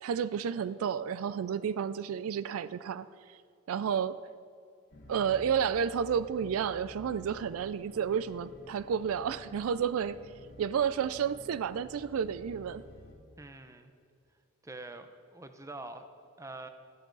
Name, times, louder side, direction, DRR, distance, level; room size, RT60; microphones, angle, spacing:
voice 1, 0.0-3.4 3.7-4.2 5.1-10.2 10.6-12.8, right 7 dB, 70° right, 15 dB, 0.3 m, -31 dB
sound 1, 4.9-13.1, left 1 dB, 55° left, 1.6 m, -52 dB
voice 2, 13.4-13.9 14.6-16.0 16.4-16.7, right 2 dB, 15° right, 8 dB, 0.6 m, -45 dB
13.0 x 12.0 x 3.9 m, 2.3 s
head